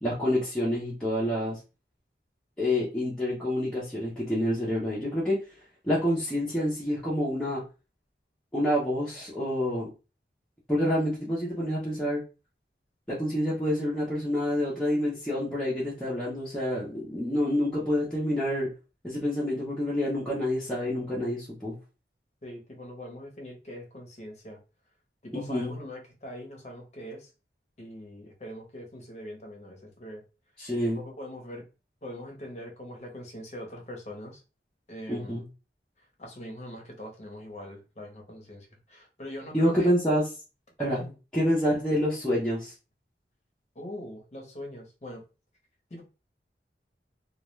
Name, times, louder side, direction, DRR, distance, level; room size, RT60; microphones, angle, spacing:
voice 1, 0.0-1.6 2.6-5.4 5.8-7.6 8.5-9.9 10.7-12.2 13.1-18.7 19.0-21.7 25.3-25.7 30.6-31.0 35.1-35.4 39.5-40.3 40.8-41.0 41.3-42.7, equal, 5° left, 0.6 m, -27 dB
voice 2, 22.4-24.6 25.2-27.3 27.8-30.2 31.0-31.6 32.0-34.4 34.9-35.4 36.2-39.9 40.9-41.1 43.7-45.2 45.9-46.0, left 1 dB, 40° left, 0.7 m, -42 dB
2.3 x 2.1 x 3.0 m
head